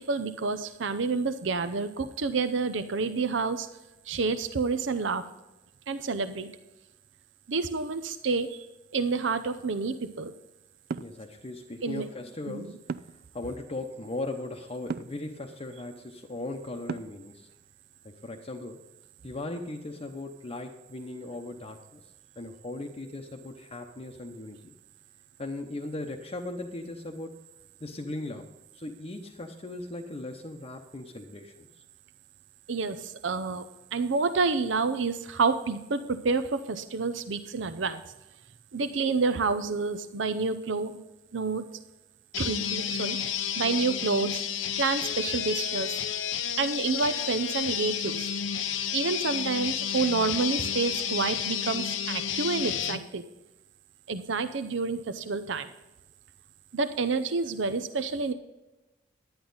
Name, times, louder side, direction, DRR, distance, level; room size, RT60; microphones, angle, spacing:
voice 1, 0.0-3.7 4.1-5.2 5.9-6.5 7.5-8.7 8.9-10.3 11.8-12.1 12.5-12.7 32.7-33.6 33.9-38.0 38.7-41.0 41.3-41.6 42.4-44.4 44.8-46.0 46.6-48.3 48.9-53.2 54.1-55.7 56.7-58.3, right 4 dB, 85° right, 11 dB, 0.7 m, -29 dB
sound 1, 10.9-11.2 12.9-13.3 14.9-15.2 16.9-17.3, right 5 dB, 55° right, 0.4 m, -34 dB
voice 2, 11.0-12.8 13.0-17.5 18.0-18.8 19.2-22.0 22.4-24.7 25.4-27.3 27.8-31.7, left 2 dB, 35° left, 2 dB, 0.8 m, -38 dB
sound 2, 42.3-53.0, left 9 dB, 85° left, 0.7 m, -31 dB
10.5 x 10.5 x 3.9 m, 1.0 s
head